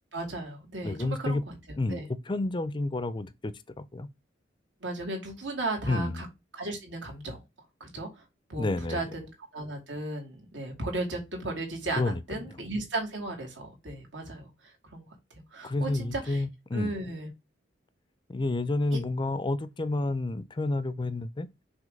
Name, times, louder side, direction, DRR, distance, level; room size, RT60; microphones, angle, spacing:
voice 1, 0.1-1.5 1.9-2.0 4.8-6.3 6.5-7.4 7.8-8.2 8.5-14.5 14.9-15.0 15.3-16.4 16.7-17.3, right 2 dB, 75° right, 2.6 m, -35 dB
voice 2, 0.8-1.4 1.8-2.0 2.3-4.1 5.9-6.2 8.6-9.1 12.0-12.5 15.6-16.9 18.3-21.5, left 2 dB, 25° left, 0.4 m, -30 dB
6.3 x 3.0 x 5.2 m
head